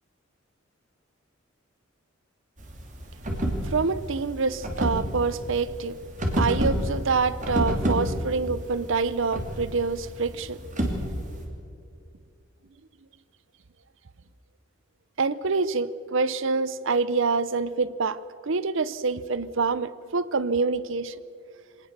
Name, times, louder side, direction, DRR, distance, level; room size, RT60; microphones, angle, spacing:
sound 1, 2.6-11.4, equal, 40° right, 2.9 m, -29 dB
voice 1, 3.6-6.0 6.3-10.6 15.2-21.1, right 4 dB, 65° right, 17 dB, 0.7 m, -26 dB
24.0 x 19.0 x 6.7 m, 2.5 s
head